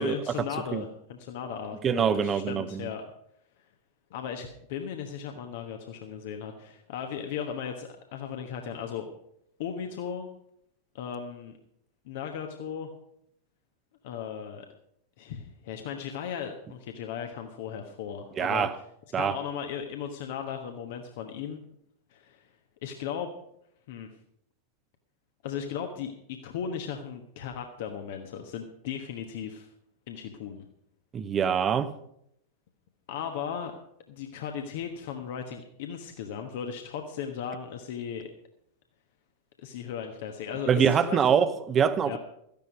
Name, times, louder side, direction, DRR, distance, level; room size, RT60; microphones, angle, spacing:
voice 1, 0.0-3.0 4.1-9.1 9.6-10.3 10.9-11.5 12.0-12.9 14.0-14.7 15.2-18.7 19.1-21.6 22.1-22.5 22.8-23.3 23.9-24.1 25.4-29.7 30.1-30.7 33.1-33.8 34.1-38.3 39.6-41.5 42.1-42.2, left 8 dB, 50° left, 1.2 m, -36 dB
voice 2, 1.8-2.9 18.4-18.7 19.1-19.4 31.1-31.9 40.7-42.2, right 7 dB, 25° right, 0.9 m, -24 dB
14.0 x 10.5 x 5.2 m
figure-of-eight pair, 90°, 0 cm